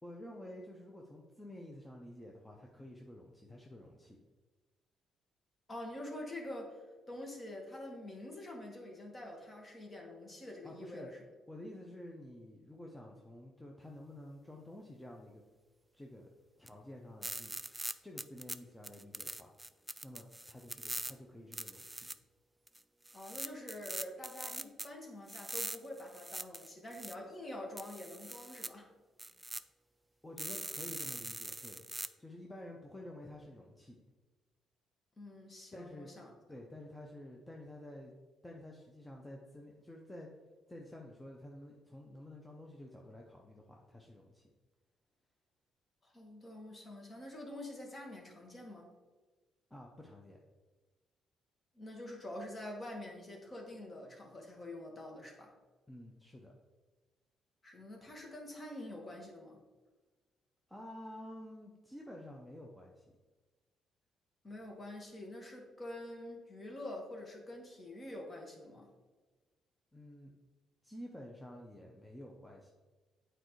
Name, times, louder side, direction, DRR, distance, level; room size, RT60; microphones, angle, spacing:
voice 1, 0.0-4.2 10.6-11.1 11.5-15.4 15.9-16.3 16.6-17.6 18.0-19.5 20.0-22.1 30.2-31.8 32.2-34.0 35.7-36.1 36.5-38.1 38.4-40.3 40.7-44.4 49.7-50.4 55.9-56.5 60.7-63.0 69.9-70.3 70.8-72.7, left 1 dB, 10° left, -1 dB, 0.8 m, -50 dB
voice 2, 5.7-11.2 23.1-28.9 35.2-36.3 46.0-48.9 51.7-55.5 57.6-59.6 64.4-68.9, left 1 dB, 30° left, 0 dB, 1.7 m, -46 dB
sound 1, 16.7-16.8 17.2-18.6 18.8-21.1 21.5-22.1 22.7-22.8 23.1-24.9 25.3-27.2 27.8-28.7 29.2-29.6 30.4-32.1, right 1 dB, 10° right, 0.3 m, -42 dB
8.8 x 4.5 x 3.2 m, 1.3 s
cardioid pair, 90°, 0 cm